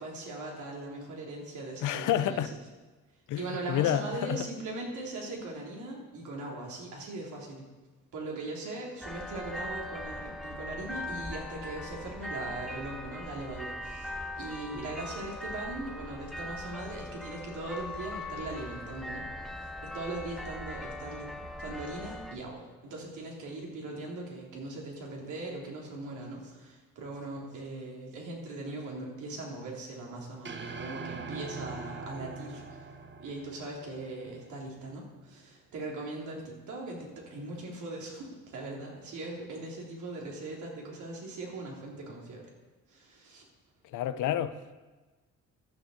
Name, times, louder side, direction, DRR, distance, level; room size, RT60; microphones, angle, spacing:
voice 1, 0.0-2.4 3.4-7.7 8.1-21.3 21.6-32.9 33.2-42.4 42.9-43.5, right 2 dB, 75° right, -2 dB, 3.5 m, -40 dB
voice 2, 1.8-2.5 3.3-4.4 43.9-44.6, left 11 dB, 80° left, 12 dB, 0.8 m, -29 dB
sound 1, 9.0-22.4, left 1 dB, ahead, 1.0 m, -40 dB
sound 2, 30.4-34.8, right 4 dB, 40° right, 1.2 m, -43 dB
12.0 x 6.8 x 7.8 m, 1.2 s
cardioid pair, 90°, 30 cm